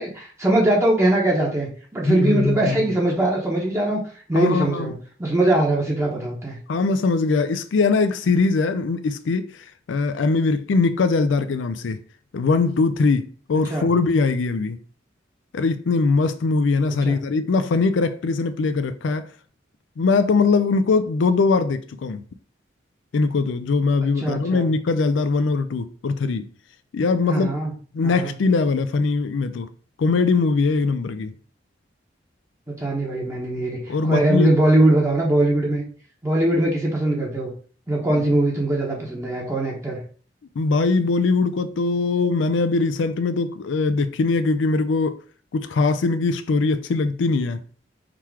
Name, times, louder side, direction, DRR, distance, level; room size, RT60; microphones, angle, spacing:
voice 1, 0.0-4.0 4.3-4.9 5.2-6.6 13.7-13.9 17.0-17.2 24.2-24.7 27.3-27.7 28.0-28.3 32.7-35.8 36.2-37.5 37.9-40.0, right 1 dB, 15° right, 1.0 m, -21 dB
voice 2, 2.0-2.9 4.4-4.9 6.7-12.0 12.3-14.8 15.5-19.3 20.0-22.2 23.1-26.5 26.9-27.5 27.9-29.7 30.0-31.3 33.9-34.6 38.1-38.3 40.6-45.2 45.5-47.6, left 4 dB, 80° left, 0.4 m, -21 dB
3.8 x 3.0 x 4.6 m
head